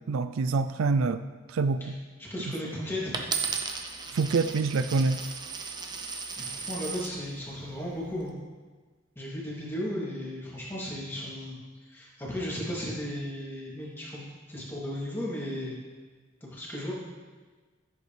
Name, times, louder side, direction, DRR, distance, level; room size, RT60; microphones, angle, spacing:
voice 1, 0.1-1.2 1.5-1.9 4.1-5.2, right 4 dB, 80° right, 11 dB, 0.4 m, -26 dB
voice 2, 2.2-3.0 6.3-8.3 9.2-11.6 11.9-15.8 16.4-16.9, equal, 10° left, -6 dB, 2.6 m, -35 dB
Coin (dropping), 3.1-7.2 7.9-8.3, right 5 dB, 20° right, 0.6 m, -35 dB
15.0 x 8.2 x 3.3 m, 1.4 s
head